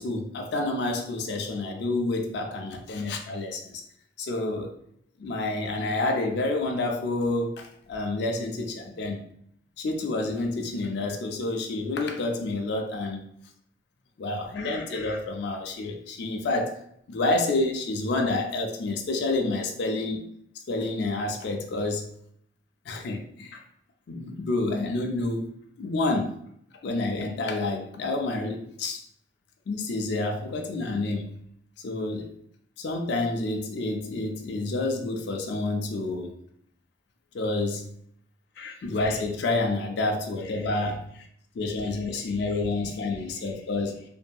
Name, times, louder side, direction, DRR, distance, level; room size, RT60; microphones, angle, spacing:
voice 1, 0.0-3.8 4.2-4.8 5.2-9.2 9.8-13.2 14.2-16.8 17.1-20.2 20.7-22.1 22.9-23.6 24.1-25.5 25.8-26.4 26.8-29.0 29.7-31.4 31.8-32.3 32.8-36.3 37.3-37.9 38.6-41.3 41.5-44.0, left 2 dB, 70° left, 3 dB, 0.4 m, -29 dB
2.6 x 2.6 x 2.2 m, 0.68 s
head